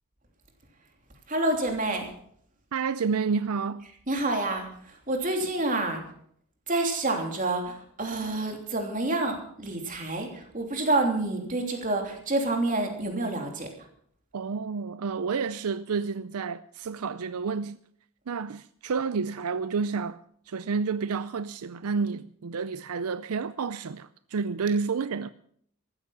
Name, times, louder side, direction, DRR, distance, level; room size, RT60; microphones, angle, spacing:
voice 1, 1.3-2.1 4.1-6.0 6.7-13.7, right 2 dB, 35° right, 3.1 m, -28 dB
voice 2, 2.7-3.9 14.3-17.8 18.3-20.2 20.5-25.3, right 5 dB, 80° right, 0.5 m, -30 dB
14.5 x 13.0 x 5.8 m
head